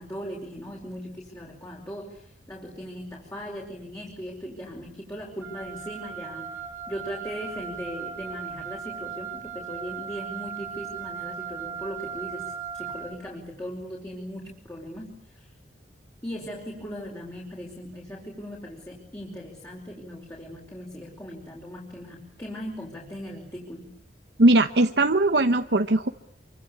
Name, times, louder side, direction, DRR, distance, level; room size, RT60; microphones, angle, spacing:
voice 1, 0.0-6.5 6.9-12.4 12.7-15.5 16.2-23.9, equal, 15° left, -2 dB, 4.9 m, -38 dB
Wind instrument woodwind instrument, 5.4-13.2, right 7 dB, 10° right, 3.3 m, -37 dB
voice 2, 24.4-26.1, right 2 dB, 70° right, 8 dB, 1.0 m, -19 dB
27.0 x 24.5 x 8.6 m, 0.71 s
head